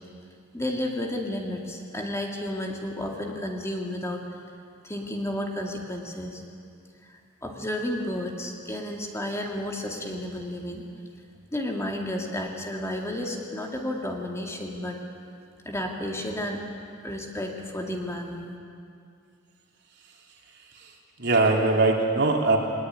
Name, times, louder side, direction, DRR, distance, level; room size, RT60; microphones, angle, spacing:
voice 1, 0.5-4.2 4.8-6.4 7.1-10.9 11.5-15.0 15.6-16.6 17.0-18.5, left 1 dB, 15° left, 1 dB, 2.4 m, -32 dB
voice 2, 20.5-22.6, right 3 dB, 60° right, 0 dB, 3.3 m, -22 dB
21.5 x 19.5 x 9.6 m, 2.3 s
head